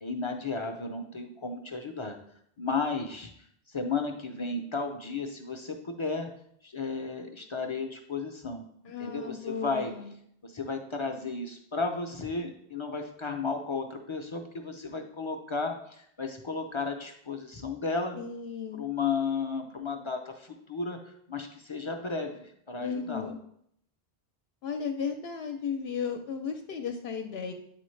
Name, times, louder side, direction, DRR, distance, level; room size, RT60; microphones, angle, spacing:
voice 1, 0.0-2.2 2.6-6.3 6.6-9.9 10.4-18.2 18.7-23.3, left 4 dB, 40° left, 4 dB, 0.5 m, -34 dB
voice 2, 8.9-10.1 18.2-18.9 22.8-23.4 24.6-27.5, left 6 dB, 80° left, 4 dB, 0.8 m, -35 dB
8.5 x 4.1 x 3.2 m, 0.70 s
omnidirectional pair, 1.0 m